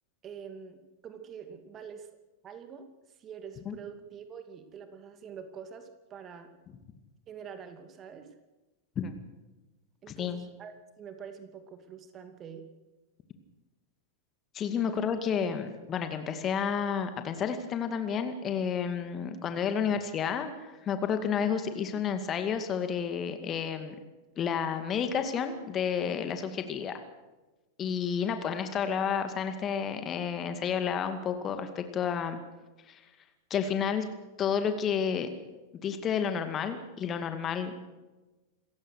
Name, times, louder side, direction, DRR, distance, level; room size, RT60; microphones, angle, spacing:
voice 1, 0.2-2.1 2.4-2.9 3.2-6.5 7.3-8.3 10.0-12.6 14.9-15.0, right 7 dB, 30° right, 8 dB, 2.5 m, -45 dB
voice 2, 10.1-10.4 14.5-24.0 24.4-27.0 27.8-32.4 32.9-33.0 33.5-34.1 34.4-35.3 35.8-37.8, left 7 dB, 30° left, 8 dB, 2.2 m, -31 dB
27.0 x 15.5 x 6.5 m, 1.1 s
figure-of-eight pair, 90°, 0 cm